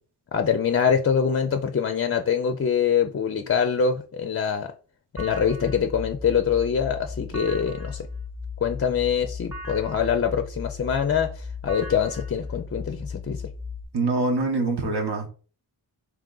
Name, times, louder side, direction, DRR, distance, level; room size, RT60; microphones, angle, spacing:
voice 1, 0.3-4.7 5.2-8.1 8.6-13.4, left 7 dB, 35° left, 0.4 m, -24 dB
sound 1, 5.2-13.8, left 4 dB, 5° right, 0.9 m, -36 dB
voice 2, 13.9-15.3, right 3 dB, 70° right, 1.0 m, -24 dB
3.5 x 3.0 x 3.8 m
wide cardioid pair, 75°, 42 cm